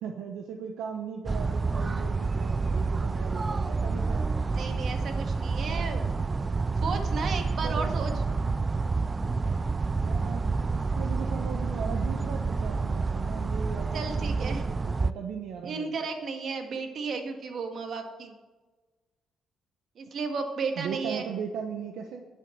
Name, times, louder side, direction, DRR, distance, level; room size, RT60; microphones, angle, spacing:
voice 1, 0.0-4.2 5.7-5.8 7.6-8.3 10.0-15.9 20.8-22.2, right 7 dB, 85° right, 4 dB, 0.9 m, -38 dB
sound 1, 1.3-15.1, right 4 dB, 30° right, 0.4 m, -28 dB
voice 2, 4.5-6.0 6.8-8.1 13.9-14.6 15.6-18.3 20.0-21.3, right 4 dB, 60° right, 5 dB, 1.8 m, -34 dB
9.9 x 8.3 x 7.8 m, 1.3 s
cardioid pair, 90°, 0 cm